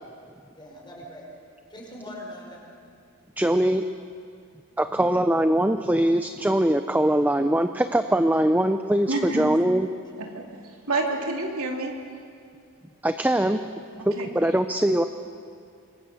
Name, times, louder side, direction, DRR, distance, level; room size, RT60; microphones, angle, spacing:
voice 1, 0.6-1.3 1.7-2.6 4.7-5.1, equal, 20° left, -1 dB, 5.1 m, -42 dB
voice 2, 3.4-3.9 4.8-9.9 13.0-13.6 14.0-15.0, right 1 dB, 10° right, 8 dB, 0.5 m, -22 dB
voice 3, 9.1-9.5 10.2-11.9 14.0-14.3, right 2 dB, 75° right, 1 dB, 3.2 m, -29 dB
25.5 x 24.0 x 6.9 m, 2.3 s
head